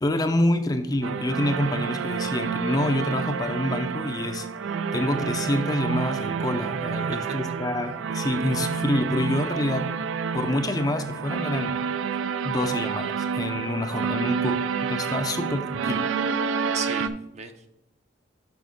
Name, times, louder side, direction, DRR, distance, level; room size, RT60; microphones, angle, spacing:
voice 1, 0.0-4.5 4.9-9.9 10.3-11.8 12.4-16.1, left 1 dB, 20° left, 7 dB, 0.4 m, -27 dB
sound 1, 1.0-17.1, right 6 dB, 80° right, 0.4 m, -29 dB
voice 2, 6.9-7.3 16.7-17.7, right 6 dB, 35° right, 7 dB, 0.6 m, -36 dB
6.3 x 5.2 x 5.2 m, 0.87 s
head